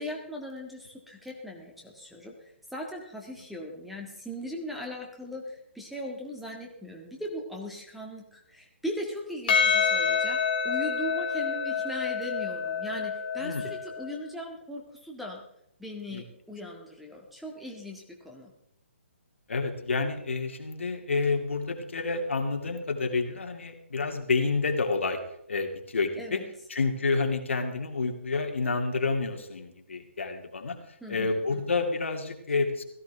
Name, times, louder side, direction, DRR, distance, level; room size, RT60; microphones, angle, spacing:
voice 1, 0.0-15.4 15.8-18.5 26.2-26.3 31.0-31.6, equal, ahead, 0 dB, 1.8 m, -39 dB
Percussion, 9.5-14.1, left 6 dB, 40° left, 2.1 m, -27 dB
voice 2, 19.5-25.2 25.5-26.4 26.7-30.8 31.1-32.8, left 4 dB, 70° left, 4 dB, 2.3 m, -29 dB
17.0 x 14.0 x 3.4 m, 0.78 s
figure-of-eight pair, 140°, 7 cm